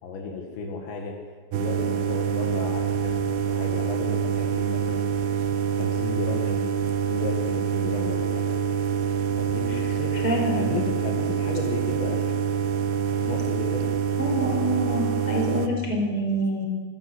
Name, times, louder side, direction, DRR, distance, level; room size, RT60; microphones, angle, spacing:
voice 1, 0.0-1.2 1.5-5.0 5.3-5.5 5.8-6.7 7.1-8.5 9.4-12.3 13.2-13.9, left 4 dB, 75° left, 1 dB, 4.0 m, -34 dB
sound 1, 1.5-15.7, right 7 dB, 70° right, 2.9 m, -26 dB
voice 2, 10.2-10.6 14.2-16.7, equal, 30° left, 0 dB, 5.7 m, -26 dB
26.5 x 14.5 x 8.0 m, 1.5 s
omnidirectional pair, 5.2 m